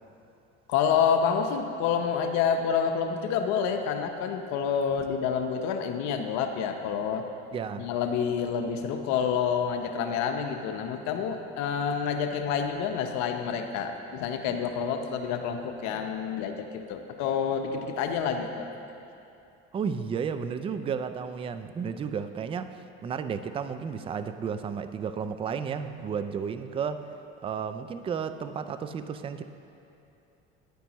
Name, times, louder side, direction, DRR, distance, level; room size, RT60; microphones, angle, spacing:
voice 1, 0.7-7.2 7.8-18.7, left 7 dB, 65° left, 6 dB, 0.8 m, -28 dB
voice 2, 7.5-7.9 19.7-22.7 23.0-27.0 27.4-29.4, right 6 dB, 20° right, 10 dB, 0.3 m, -32 dB
10.5 x 9.2 x 3.0 m, 2.7 s
supercardioid pair, 100°, 30 cm